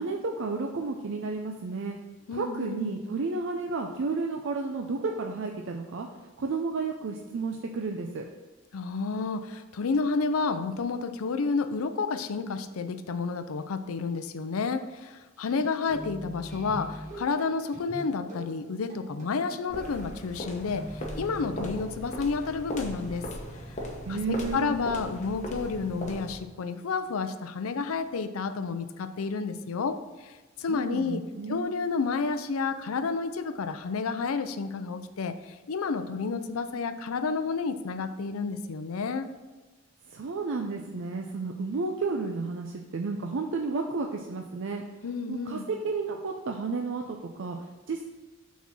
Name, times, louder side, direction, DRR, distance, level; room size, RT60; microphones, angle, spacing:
voice 1, 0.0-2.0 2.3-6.1 6.4-8.3 24.1-24.8 30.7-31.7 40.1-44.8 45.3-48.0, right 4 dB, 65° right, 2 dB, 0.5 m, -32 dB
voice 2, 2.3-2.9 8.7-23.3 24.1-31.2 31.5-39.3 45.0-45.7, left 4 dB, 85° left, 10 dB, 0.5 m, -30 dB
sound 1, 15.4-21.7, equal, 35° right, 1.8 m, -43 dB
sound 2, 19.7-26.5, equal, 35° left, 0.9 m, -38 dB
6.0 x 4.1 x 6.1 m, 1.2 s
head